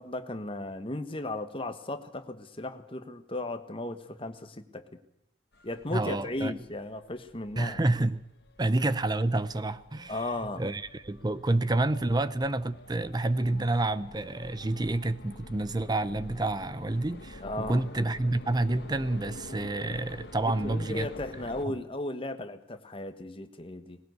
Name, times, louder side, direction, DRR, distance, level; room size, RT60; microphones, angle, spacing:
voice 1, 0.0-5.0 5.6-7.8 8.6-8.7 10.1-10.6 17.4-17.9 20.6-24.0, left 2 dB, 30° left, 1.4 m, -36 dB
sound 1, 5.5-21.7, left 1 dB, 60° left, 1.7 m, -48 dB
voice 2, 5.9-6.5 7.6-8.2 8.6-10.3 10.6-21.1, right 2 dB, 20° right, 0.7 m, -29 dB
19.5 x 17.0 x 8.0 m
head